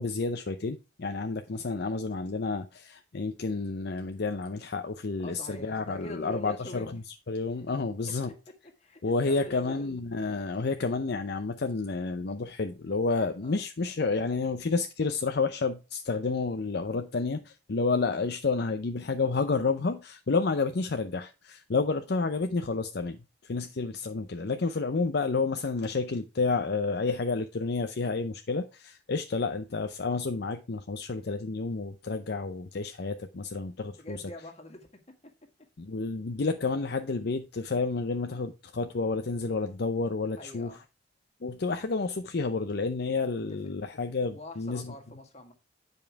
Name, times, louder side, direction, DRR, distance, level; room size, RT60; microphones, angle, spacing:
voice 1, 0.0-7.0 7.3-8.3 9.0-34.2 35.8-40.7 41.4-44.9, left 4 dB, 60° left, 0.6 m, -30 dB
voice 2, 5.2-6.9 8.8-9.9 13.4-13.6 34.0-34.9 38.3-38.5 40.4-40.8 43.5-43.6 44.3-45.5, left 1 dB, 35° left, 1.9 m, -44 dB
9.2 x 5.4 x 4.7 m
head